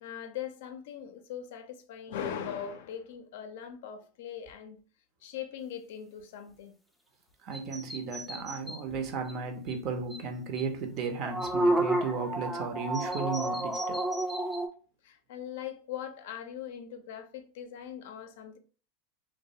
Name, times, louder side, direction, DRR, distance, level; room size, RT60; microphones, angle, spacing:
voice 1, 0.0-4.8 5.2-6.7 15.0-18.6, left 9 dB, 75° left, 0.4 m, -40 dB
voice 2, 7.4-14.0, right 4 dB, 50° right, 0.5 m, -35 dB
sound 1, 7.5-8.8 9.3-9.4 9.7-9.8 10.1-10.2 10.5-10.6 11.0-14.7, right 1 dB, ahead, 0.4 m, -30 dB
2.3 x 2.1 x 2.7 m
supercardioid pair, 125°, 0 cm